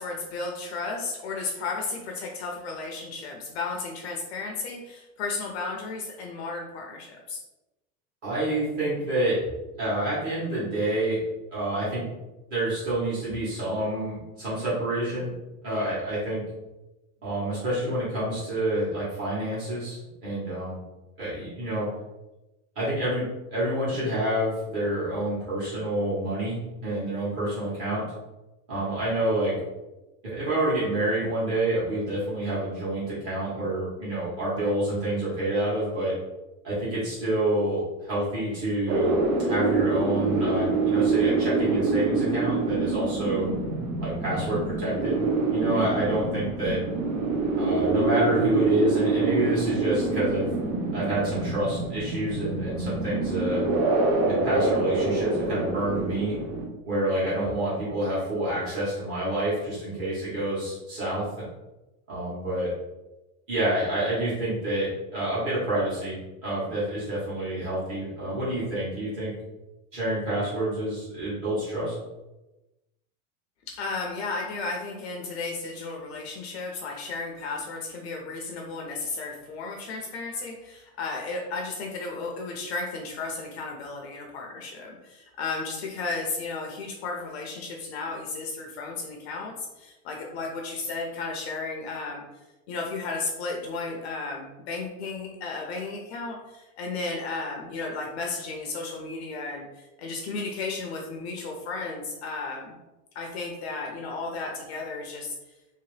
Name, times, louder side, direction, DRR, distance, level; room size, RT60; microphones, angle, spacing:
voice 1, 0.0-7.4 73.7-92.2 92.7-102.8 103.1-105.4, left 3 dB, 50° left, 1 dB, 0.5 m, -34 dB
voice 2, 8.2-9.4 9.8-11.2 11.5-12.0 12.5-15.3 15.6-16.4 17.2-20.8 21.2-21.9 22.7-28.0 28.7-29.5 30.2-36.1 36.6-39.1 39.4-43.5 44.0-45.2 45.5-46.8 47.6-50.5 50.9-53.6 54.2-56.4 56.9-61.3 62.1-62.7 63.5-69.3 69.9-71.9, right 1 dB, 30° right, -10 dB, 1.2 m, -28 dB
sound 1, 38.9-56.7, right 3 dB, 90° right, 1.5 m, -26 dB
3.0 x 2.8 x 3.2 m, 1.0 s
supercardioid pair, 180°, 42 cm